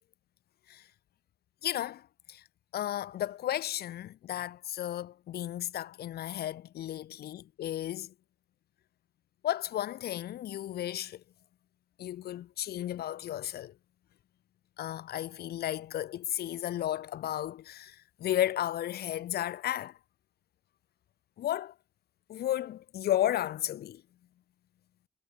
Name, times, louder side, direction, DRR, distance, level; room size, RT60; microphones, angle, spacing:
voice 1, 1.6-2.0 2.3-2.4 2.7-8.1 9.4-11.2 12.0-13.7 14.8-20.0 21.4-21.7 22.3-24.0, left 12 dB, 80° left, 1.3 m, -33 dB
cardioid pair, 110°, 16 cm